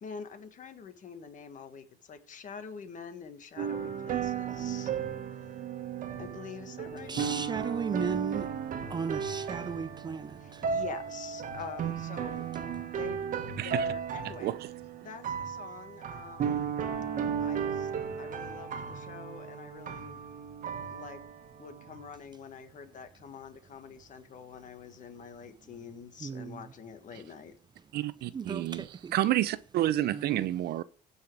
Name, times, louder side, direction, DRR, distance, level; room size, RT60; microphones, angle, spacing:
voice 1, 0.0-4.9 5.4-5.6 6.2-7.4 10.4-12.5 12.8-13.2 13.6-14.5 15.0-16.7 17.4-17.9 18.2-20.2 20.8-21.2 21.6-27.5, left 6 dB, 50° left, 1.6 m, -46 dB
sound 1, 3.6-22.1, right 7 dB, 50° right, 1.3 m, -35 dB
voice 2, 7.1-8.5 8.9-10.7 26.2-26.6 28.3-29.1 30.1-30.5, right 6 dB, 25° right, 0.4 m, -36 dB
voice 3, 13.6-13.9 14.4-14.6 27.9-28.8 29.1-30.8, right 13 dB, 70° right, 0.6 m, -29 dB
16.0 x 5.7 x 4.7 m
cardioid pair, 110°, 17 cm